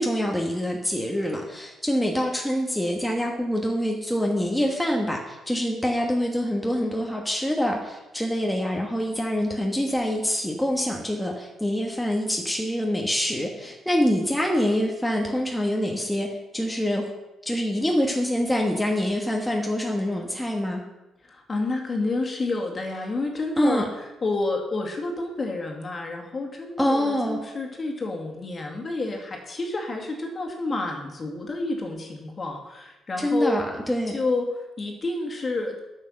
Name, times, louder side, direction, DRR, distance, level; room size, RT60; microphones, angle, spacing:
voice 1, 0.0-17.1 17.4-20.8 23.6-23.9 26.8-27.4 33.2-34.2, equal, 5° left, 0 dB, 1.5 m, -25 dB
voice 2, 21.2-33.6 34.1-35.8, left 2 dB, 35° left, 2 dB, 2.2 m, -29 dB
9.0 x 6.7 x 6.5 m, 1.0 s
cardioid pair, 90°, 0 cm